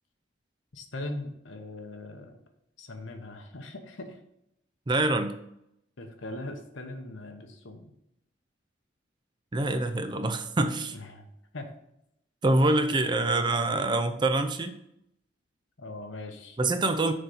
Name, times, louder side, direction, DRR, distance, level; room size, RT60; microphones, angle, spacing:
voice 1, 0.7-2.4 2.8-4.2 6.0-7.9 10.9-11.3 11.5-11.7 13.2-13.8 15.8-16.6, left 2 dB, 80° left, 6 dB, 1.0 m, -40 dB
voice 2, 4.9-5.4 9.5-11.0 12.4-14.8 16.6-17.1, right 2 dB, 25° right, 9 dB, 0.4 m, -25 dB
6.6 x 4.0 x 5.6 m, 0.79 s
head